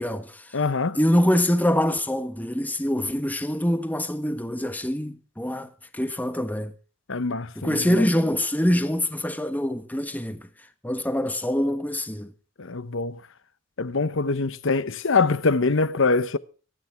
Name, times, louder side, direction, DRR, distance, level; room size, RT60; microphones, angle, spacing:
voice 1, 0.0-0.4 0.9-6.7 7.6-10.5 10.8-12.3, equal, 10° left, 1.3 m, -24 dB
voice 2, 0.5-1.0 7.1-8.1 12.6-13.2 13.8-16.4, left 4 dB, 65° left, 0.9 m, -24 dB
24.5 x 9.8 x 3.5 m
head